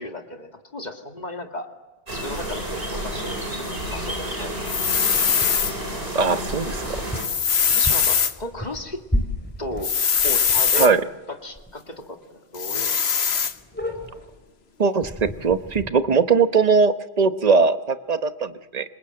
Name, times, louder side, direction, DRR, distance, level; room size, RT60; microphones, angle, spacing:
voice 1, 0.0-1.7 2.1-4.7 7.7-9.0 9.6-9.9 10.2-10.9 11.4-13.3, left 1 dB, 40° left, 3 dB, 2.4 m, -35 dB
sound 1, 2.1-7.2, right 1 dB, 60° right, 5.6 m, -30 dB
sound 2, 4.7-5.7 7.1-8.3 9.8-10.9 12.6-13.5, left 6 dB, 70° left, 1.3 m, -21 dB
sound 3, 5.4-5.8 6.6-11.1 11.5-11.7 12.0-12.1 12.6-12.7 12.9-13.0 13.3-14.4 15.0-15.9, left 1 dB, 10° left, 3.5 m, -32 dB
voice 2, 6.1-6.8 10.8-11.0 14.8-18.8, right 5 dB, 40° right, 10 dB, 1.1 m, -20 dB
27.0 x 25.5 x 7.8 m, 1.2 s
omnidirectional pair, 1.1 m